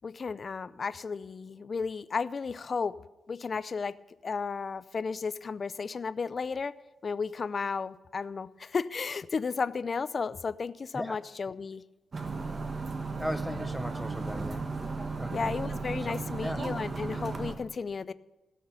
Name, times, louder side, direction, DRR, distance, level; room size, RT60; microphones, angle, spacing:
voice 1, 0.0-3.0 3.3-4.0 4.2-6.8 7.0-11.8 15.3-18.1, left 5 dB, 45° left, 17 dB, 0.4 m, -33 dB
sound 1, 12.1-17.5, right 3 dB, 40° right, 1.5 m, -35 dB
voice 2, 13.2-14.7 15.2-15.5 16.0-16.1 16.4-16.6, equal, ahead, 11 dB, 0.6 m, -37 dB
16.5 x 6.5 x 6.9 m, 1.1 s
cardioid pair, 95°, 0 cm